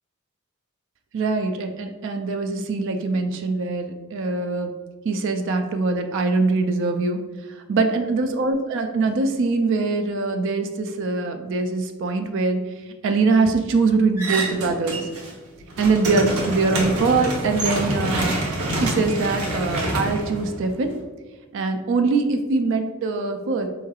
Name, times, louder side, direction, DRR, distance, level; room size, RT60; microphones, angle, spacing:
voice 1, 1.1-4.7 5.0-7.2 7.5-12.6 13.0-15.1 15.8-18.4 18.7-20.9 21.5-23.7, right 3 dB, 60° right, 6 dB, 0.3 m, -23 dB
sound 1, 14.2-15.3 15.6-21.0, right 1 dB, 85° right, 0.8 m, -26 dB
4.5 x 3.1 x 2.3 m, 1.3 s
head